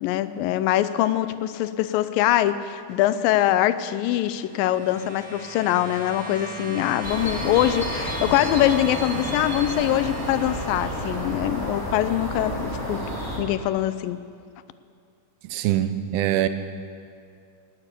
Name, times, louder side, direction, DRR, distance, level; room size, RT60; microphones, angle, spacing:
voice 1, 0.0-13.0 13.4-14.2, left 13 dB, 80° left, 13 dB, 2.2 m, -23 dB
sound 1, 4.0-11.8 12.9-13.0, right 3 dB, 50° right, 2.9 m, -38 dB
sound 2, 7.0-13.4, equal, 5° left, 2.2 m, -31 dB
voice 2, 15.4-16.5, right 12 dB, 90° right, 10 dB, 2.6 m, -23 dB
19.5 x 8.4 x 8.3 m, 2.3 s
omnidirectional pair, 4.2 m